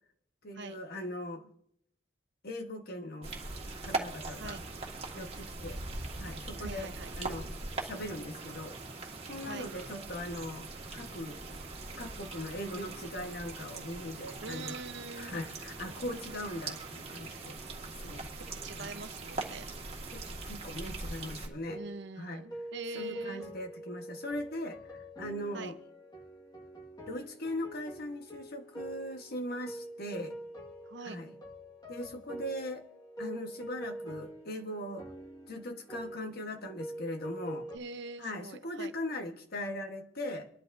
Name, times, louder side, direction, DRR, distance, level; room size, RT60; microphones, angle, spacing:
voice 1, 0.4-1.5 2.4-3.3 3.8-4.6 5.1-5.8 6.2-7.5 7.8-8.8 9.2-10.7 10.9-11.4 12.0-14.7 15.1-17.6 18.0-18.3 18.7-19.0 20.1-21.8 22.2-22.4 22.9-25.8 27.1-30.3 31.0-31.4 31.9-32.8 33.2-35.1 35.5-37.7 38.2-40.5, left 1 dB, 55° left, 5 dB, 1.3 m, -40 dB
sound 1, 3.2-21.5, right 3 dB, 35° right, 1.8 m, -41 dB
voice 2, 6.6-7.2 9.5-9.7 14.4-15.4 18.5-19.7 21.7-23.4 25.5-25.7 30.9-31.2 37.7-38.9, right 3 dB, 65° right, 9 dB, 0.8 m, -44 dB
sound 2, 21.7-37.8, right 1 dB, 20° left, 1.7 m, -45 dB
24.5 x 11.5 x 2.7 m, 0.71 s
head